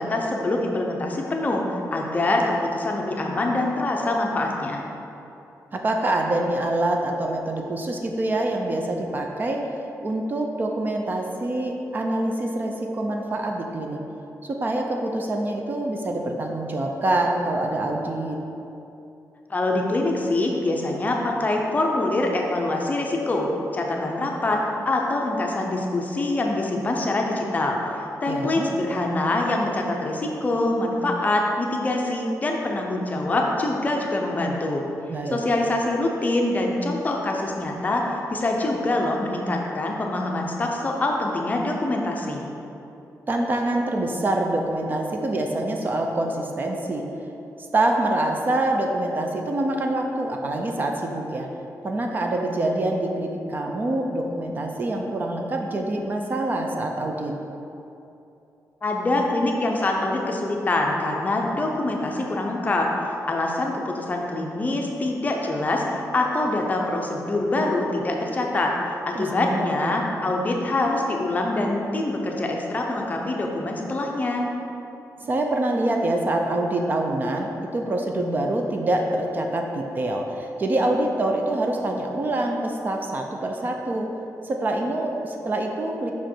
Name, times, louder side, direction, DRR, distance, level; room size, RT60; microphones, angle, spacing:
voice 1, 0.0-1.6 1.9-4.8 19.5-34.8 35.3-42.5 58.8-62.9 63.3-68.7 69.1-74.5, left 2 dB, 25° left, 0 dB, 0.6 m, -24 dB
voice 2, 5.7-9.6 10.0-14.0 14.4-18.4 28.3-28.7 35.1-35.4 43.3-47.1 47.6-51.5 51.8-57.3 69.1-70.0 75.2-84.1 84.4-86.1, right 1 dB, 30° right, 2 dB, 0.4 m, -25 dB
5.6 x 4.9 x 4.4 m, 2.9 s
wide cardioid pair, 155°, 6 cm